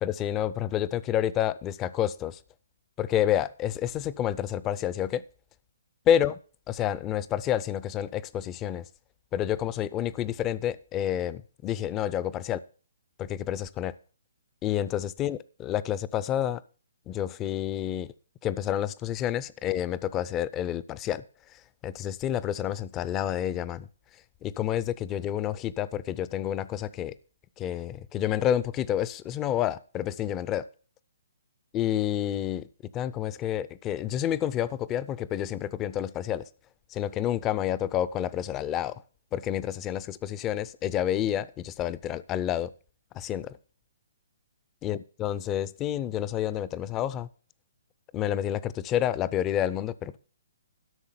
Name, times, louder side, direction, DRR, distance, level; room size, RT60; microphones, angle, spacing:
voice 1, 0.0-2.4 3.0-5.2 6.1-6.3 6.7-8.8 9.3-12.6 13.2-13.9 14.6-16.6 17.1-18.1 18.4-21.2 21.8-23.9 24.4-27.1 27.6-30.6 31.7-32.7 32.9-36.4 36.9-39.0 39.3-42.7 43.1-43.5 44.8-47.3 48.1-50.2, left 11 dB, 20° left, 0.4 m, -29 dB
12.5 x 6.3 x 5.7 m
hypercardioid pair, 160°, 0 cm